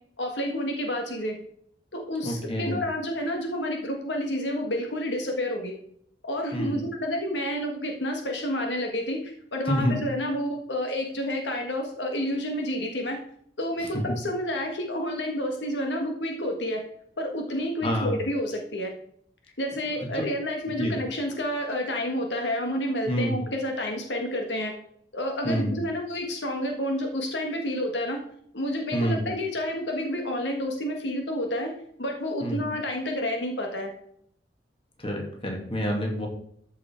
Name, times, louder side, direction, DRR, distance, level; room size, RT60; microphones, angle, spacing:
voice 1, 0.2-1.3 1.9-5.7 6.2-13.2 13.6-16.8 17.2-18.9 19.6-24.7 25.1-28.2 28.5-31.7 32.0-33.9, left 1 dB, 75° left, 2 dB, 1.6 m, -29 dB
voice 2, 2.2-2.7 6.5-6.8 9.7-10.0 13.9-14.0 17.8-18.1 20.0-20.3 20.8-20.9 23.1-23.4 25.4-25.7 28.9-29.2 32.4-32.6 35.0-36.3, equal, 30° left, 1 dB, 2.3 m, -27 dB
13.5 x 5.6 x 4.5 m, 0.66 s
head